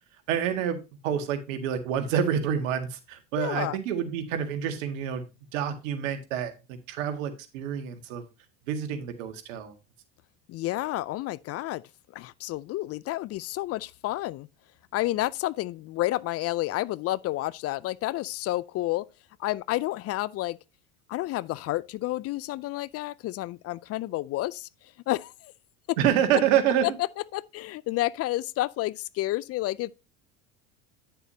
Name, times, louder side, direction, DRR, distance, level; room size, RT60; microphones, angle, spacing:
voice 1, 0.3-0.8 1.0-5.3 5.5-8.2 8.7-9.7 26.0-26.8, right 9 dB, 80° right, 1.9 m, -27 dB
voice 2, 3.3-3.8 10.5-11.8 12.1-14.5 14.9-19.0 19.4-20.6 21.1-24.7 25.1-25.5 27.3-29.9, left 16 dB, 40° left, 0.4 m, -30 dB
10.0 x 6.7 x 2.8 m
supercardioid pair, 100°, 39 cm